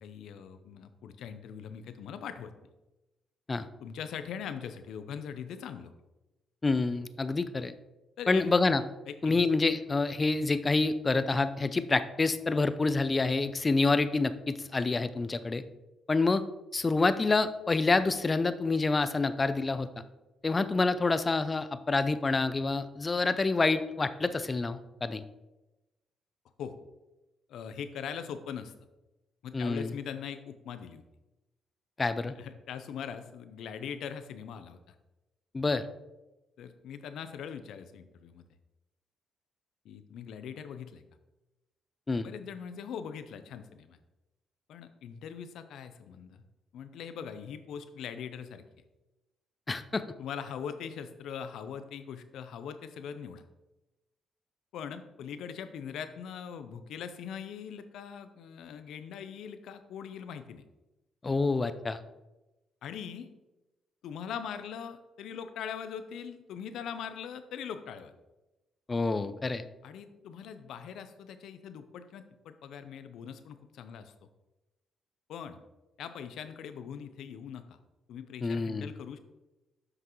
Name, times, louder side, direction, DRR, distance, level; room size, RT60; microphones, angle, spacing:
voice 1, 0.0-2.5 3.8-5.9 8.2-8.5 9.1-9.5 26.6-26.7 27.5-28.7 29.4-31.0 32.3-34.9 36.6-38.4 39.8-41.0 42.2-44.0 44.7-46.4 46.7-48.6 50.2-53.4 54.7-60.6 62.8-63.3 64.0-68.1 69.8-74.3 75.3-75.6 76.0-77.8 78.1-79.2, left 7 dB, 80° left, 10 dB, 0.6 m, -41 dB
voice 2, 6.6-7.7 8.3-8.8 9.2-15.6 16.1-16.4 16.7-19.9 20.4-25.2 29.5-29.9 32.0-32.3 35.5-35.8 42.1-42.3 49.7-50.0 61.2-62.0 68.9-69.7 78.4-78.9, left 3 dB, 25° left, 12 dB, 0.4 m, -27 dB
8.0 x 5.9 x 3.1 m, 1.0 s
cardioid pair, 90°, 0 cm